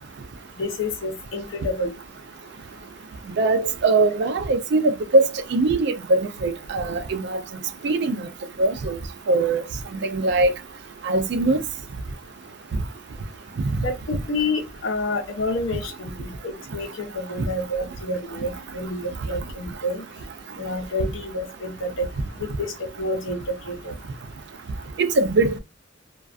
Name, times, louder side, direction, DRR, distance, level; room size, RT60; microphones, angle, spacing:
voice 1, 0.6-1.9 13.8-20.0 20.6-22.1 22.4-23.9, left 2 dB, 75° left, 0.8 m, -29 dB
voice 2, 3.4-7.4 7.8-8.3 8.6-9.0 9.3-9.6 10.0-10.5 11.0-11.6 13.6-13.7 25.0-25.6, right 2 dB, 55° right, 0.4 m, -21 dB
2.3 x 2.3 x 2.4 m
head